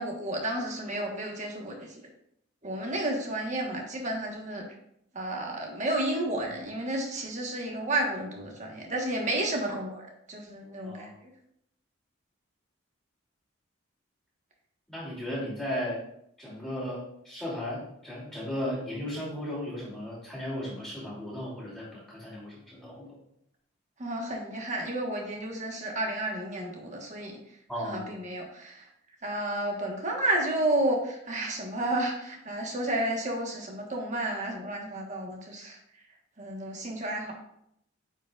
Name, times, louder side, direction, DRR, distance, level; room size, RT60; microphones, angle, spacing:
voice 1, 0.0-2.0 2.6-4.6 5.1-11.3 24.0-27.3 27.8-28.9 29.2-35.8 36.4-37.3, right 1 dB, 35° right, 0 dB, 1.4 m, -31 dB
voice 2, 14.9-16.0 16.4-23.1 27.7-28.1, left 1 dB, 5° left, -10 dB, 2.8 m, -35 dB
9.3 x 5.1 x 2.5 m, 0.75 s
head